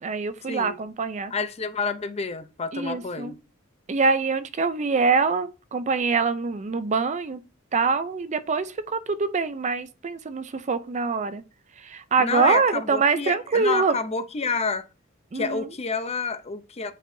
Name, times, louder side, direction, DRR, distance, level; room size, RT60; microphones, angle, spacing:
voice 1, 0.0-1.3 2.7-3.3 3.9-7.4 7.7-11.4 11.8-14.0 15.3-15.7, right 4 dB, 35° right, 0.5 m, -24 dB
voice 2, 1.3-3.4 12.2-14.9 15.3-16.9, left 4 dB, 30° left, 0.6 m, -29 dB
9.0 x 4.5 x 2.6 m
head